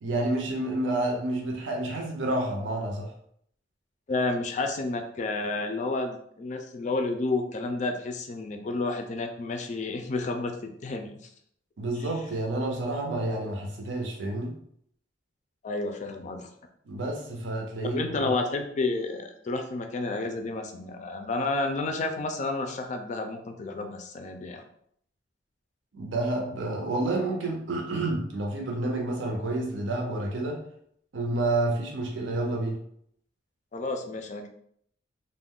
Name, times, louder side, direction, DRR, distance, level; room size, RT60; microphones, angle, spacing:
voice 1, 0.0-3.1 11.8-14.5 16.9-18.3 25.9-30.6 31.1-32.8, right 2 dB, 80° right, 0 dB, 0.6 m, -29 dB
voice 2, 4.1-11.1 15.6-16.5 17.8-24.6 33.7-34.5, left 3 dB, 40° left, 5 dB, 0.3 m, -30 dB
2.3 x 2.1 x 3.5 m, 0.68 s
head